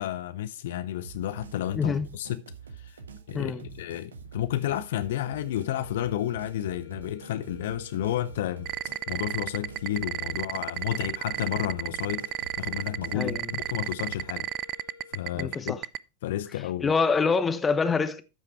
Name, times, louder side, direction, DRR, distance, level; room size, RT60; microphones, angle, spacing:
voice 1, 0.0-2.4 2.8-3.0 3.3-8.7 9.1-12.2 12.6-14.5 15.1-15.8 16.2-16.9, left 12 dB, 55° left, 0.6 m, -31 dB
sound 1, 1.0-14.3, right 5 dB, 70° right, 1.3 m, -46 dB
voice 2, 1.7-2.1 3.3-3.6 13.1-13.6 15.3-15.8 16.8-18.2, left 5 dB, 15° left, 0.9 m, -26 dB
sound 2, 4.9-15.8, left 6 dB, 90° left, 4.3 m, -52 dB
sound 3, 8.7-16.0, right 14 dB, 35° right, 0.4 m, -31 dB
13.0 x 5.7 x 4.4 m
figure-of-eight pair, 90°, 0 cm